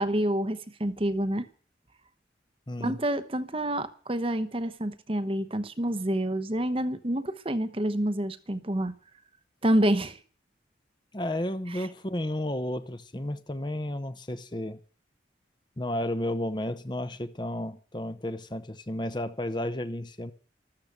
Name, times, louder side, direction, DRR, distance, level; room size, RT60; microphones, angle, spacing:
voice 1, 0.0-1.5 2.8-8.9 9.6-10.2 11.7-11.9, right 1 dB, 30° right, 0.9 m, -28 dB
voice 2, 2.7-3.0 11.1-14.8 15.8-20.3, left 1 dB, 25° left, 0.9 m, -32 dB
13.5 x 13.5 x 6.7 m
head